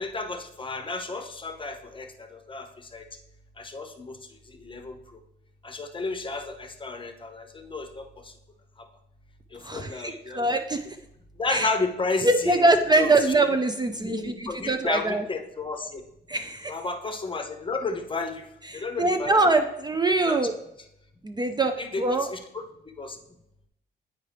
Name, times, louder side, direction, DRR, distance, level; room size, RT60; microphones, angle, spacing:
voice 1, 0.0-2.7 2.9-3.0 3.6-4.2 4.6-5.0 5.6-8.0 9.5-10.5 11.4-12.6 13.0-13.1 13.9-16.0 16.7-18.4 18.7-19.4 20.2-20.5 21.8-22.6 23.0-23.2, left 3 dB, 25° left, 6 dB, 0.7 m, -32 dB
voice 2, 9.6-10.9 11.5-11.7 12.2-15.2 16.3-16.7 18.7-20.5 21.2-22.3, right 2 dB, 20° right, 6 dB, 0.4 m, -23 dB
8.5 x 4.7 x 3.3 m, 0.82 s
cardioid pair, 90°, 20 cm